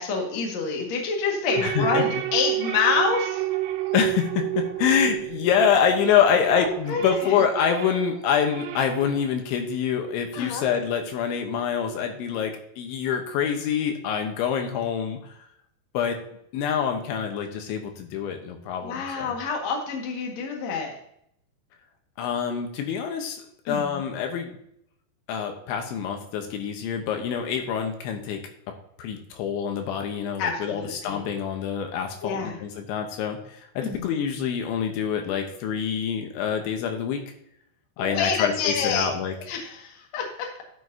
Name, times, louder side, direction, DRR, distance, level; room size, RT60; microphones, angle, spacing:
voice 1, 0.0-3.4 6.6-7.4 10.3-10.7 18.8-20.9 23.7-24.0 30.4-31.2 32.2-32.6 33.8-34.1 38.0-39.1 39.5-40.6, left 5 dB, 55° left, 0 dB, 2.0 m, -27 dB
sound 1, 1.5-6.2 6.6-9.3, right 16 dB, 80° right, 2.9 m, -30 dB
voice 2, 1.6-2.0 3.9-15.3 15.9-16.2 16.5-19.4 22.2-24.6 25.3-28.4 29.0-37.2 38.0-39.3, left 7 dB, 80° left, 4 dB, 3.2 m, -26 dB
12.5 x 7.0 x 2.8 m, 0.72 s
omnidirectional pair, 5.6 m